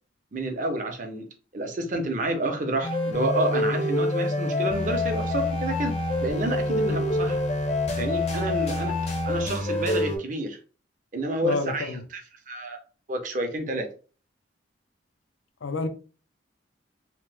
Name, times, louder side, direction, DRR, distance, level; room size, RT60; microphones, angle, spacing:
voice 1, 0.3-1.3 1.5-5.9 6.2-7.4 8.0-9.0 9.2-10.6 11.1-12.2 12.5-12.8 13.1-13.9, right 1 dB, 40° right, 0.6 m, -29 dB
sound 1, 2.8-10.2, left 2 dB, 35° left, 0.6 m, -26 dB
voice 2, 11.4-12.0 15.6-15.9, left 3 dB, 85° left, 0.5 m, -29 dB
2.9 x 2.0 x 3.3 m
head